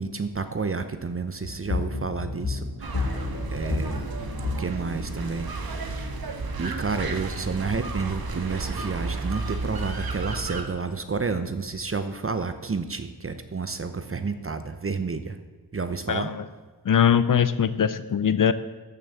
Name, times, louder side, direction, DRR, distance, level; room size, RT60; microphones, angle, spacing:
voice 1, 0.0-5.7 6.6-15.4 15.7-16.3, right 4 dB, 35° right, 9 dB, 0.8 m, -30 dB
sound 1, 1.4-5.5, left 3 dB, 80° left, 2.3 m, -32 dB
sound 2, 2.8-10.6, right 3 dB, 60° right, 1.7 m, -32 dB
voice 2, 16.1-16.4 16.8-18.5, left 8 dB, 50° left, 14 dB, 0.6 m, -21 dB
13.5 x 6.1 x 7.1 m, 1.4 s
cardioid pair, 75°, 41 cm